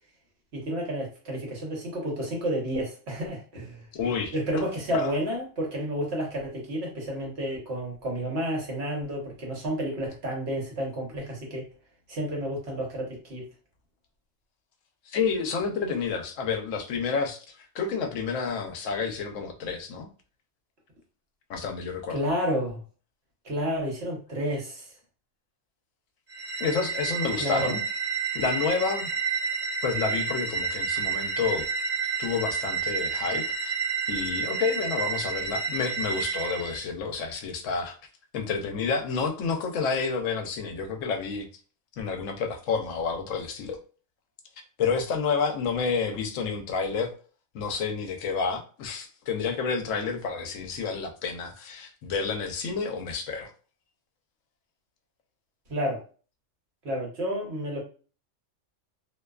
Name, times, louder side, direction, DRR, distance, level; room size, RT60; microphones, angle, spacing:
voice 1, 0.5-3.8 4.3-11.6 12.1-13.4 22.1-22.8 23.4-24.9 27.4-27.7 55.7-56.0 56.8-57.8, equal, 55° right, 1.2 m, -30 dB
voice 2, 3.9-4.6 4.9-5.1 15.1-20.1 21.5-22.2 26.6-27.8 28.3-29.1 29.8-31.7 32.2-33.8 34.1-38.0 38.3-41.5 42.0-43.8 44.8-47.1 47.5-53.5, left 5 dB, 75° left, 0.9 m, -29 dB
sound 1, 26.3-36.8, right 5 dB, 40° right, 0.7 m, -30 dB
2.6 x 2.2 x 2.3 m
omnidirectional pair, 1.3 m